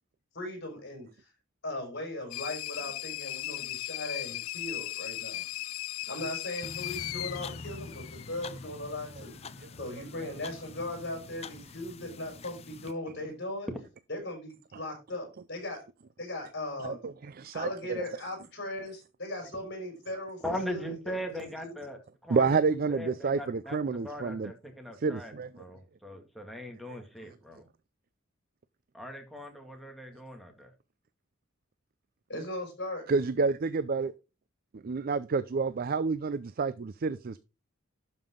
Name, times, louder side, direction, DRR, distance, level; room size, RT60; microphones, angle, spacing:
voice 1, 0.3-1.3 1.6-5.5 6.1-9.4 9.8-13.7 14.1-15.8 16.2-17.0 17.5-21.8 32.3-33.1, left 1 dB, 55° left, 5.5 m, -38 dB
sound 1, 2.3-8.7, left 16 dB, 85° left, 0.4 m, -37 dB
sound 2, 6.6-12.9, left 4 dB, 30° left, 0.5 m, -45 dB
voice 2, 16.8-18.0 22.3-24.5 25.0-25.5 26.9-27.0 33.1-34.1 34.7-37.4, right 4 dB, 45° right, 0.4 m, -29 dB
voice 3, 20.4-22.5 22.9-27.7 28.9-30.7, equal, ahead, 2.1 m, -40 dB
12.0 x 5.5 x 3.7 m
head